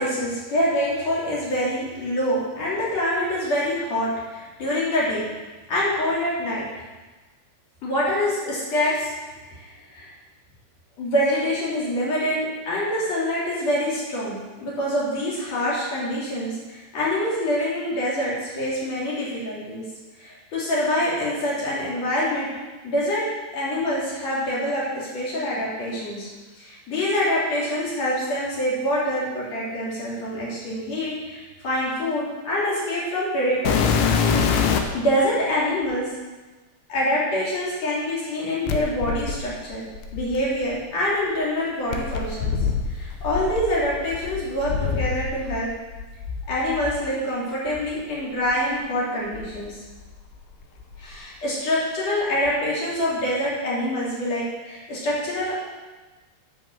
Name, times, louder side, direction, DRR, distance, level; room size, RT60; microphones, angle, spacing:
voice 1, 0.0-5.3 5.7-6.6 7.8-9.1 9.6-10.1 11.0-19.8 20.2-22.5 22.8-23.2 23.5-26.3 26.6-34.0 34.6-36.1 36.9-39.9 40.1-42.6 42.9-45.7 46.5-49.8 51.0-55.5, left 1 dB, 45° left, -6 dB, 4.0 m, -25 dB
sound 1, 33.7-35.1 35.9-36.0 38.7-40.8 41.9-45.6 45.9-47.0 47.7-47.9 48.5-48.6 49.3-50.4 50.6-51.2 52.5-52.6, left 6 dB, 85° left, 2.8 m, -25 dB
8.6 x 6.7 x 7.4 m, 1.2 s
omnidirectional pair, 4.6 m